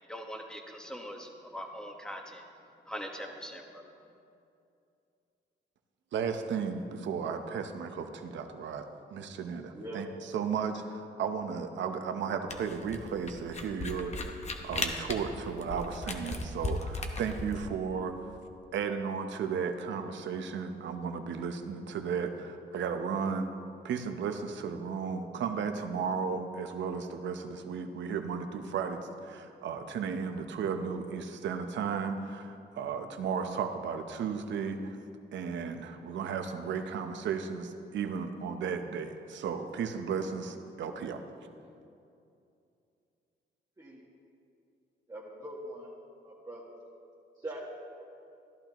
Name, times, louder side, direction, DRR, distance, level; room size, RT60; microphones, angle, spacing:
voice 1, 0.0-2.4 2.8-3.8, equal, 5° left, 2 dB, 1.3 m, -42 dB
voice 2, 6.1-10.1 10.3-14.3 14.6-18.1 18.7-23.5 23.8-35.0 35.3-41.2, right 6 dB, 80° right, 7 dB, 0.8 m, -34 dB
voice 3, 9.7-10.1 43.8-44.0 45.1-45.9 46.2-46.6 47.4-47.6, right 1 dB, 20° right, -6 dB, 1.6 m, -42 dB
Camera, 12.5-17.7, left 2 dB, 35° left, 1.1 m, -36 dB
14.0 x 11.5 x 3.0 m, 2.6 s
cardioid pair, 90°, 19 cm